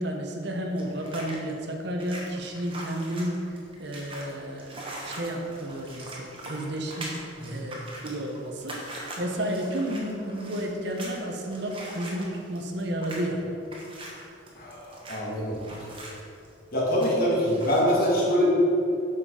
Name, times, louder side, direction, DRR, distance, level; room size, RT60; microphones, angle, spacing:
voice 1, 0.0-7.1 7.4-8.8 9.2-13.5, right 1 dB, 55° right, 2 dB, 0.9 m, -32 dB
sound 1, 0.7-17.8, right 1 dB, 25° right, 1.2 m, -42 dB
voice 2, 14.5-15.6 16.7-18.5, equal, 45° left, -5 dB, 2.0 m, -24 dB
7.7 x 6.1 x 4.8 m, 2.7 s
head